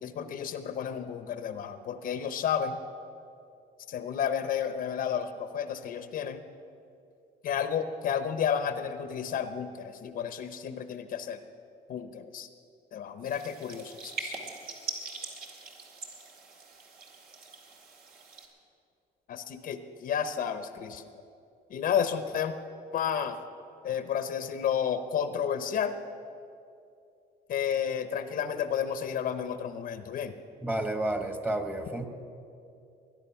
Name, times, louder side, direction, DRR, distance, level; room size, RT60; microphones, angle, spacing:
voice 1, 0.0-2.8 3.9-6.4 7.4-11.4 11.9-12.5 12.9-14.4 19.3-21.0 21.7-22.6 22.9-23.4 23.8-26.0 27.5-30.3, left 8 dB, 55° left, 10 dB, 0.9 m, -31 dB
sound 1, 13.2-18.5, right 4 dB, 60° right, 2.4 m, -42 dB
voice 2, 30.6-32.1, right 1 dB, 10° right, 7 dB, 1.3 m, -31 dB
21.0 x 10.5 x 5.8 m, 2.6 s
cardioid pair, 110°, 17 cm